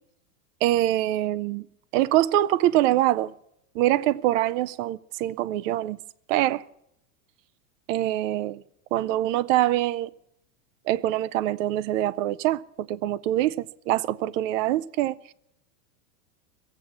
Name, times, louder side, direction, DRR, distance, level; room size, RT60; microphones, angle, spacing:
voice 1, 0.6-1.6 1.9-3.3 3.8-6.0 6.3-6.6 7.9-8.6 8.9-10.1 10.9-15.3, right 14 dB, 55° right, 0.6 m, -24 dB
22.5 x 8.5 x 5.9 m
supercardioid pair, 140°, 45 cm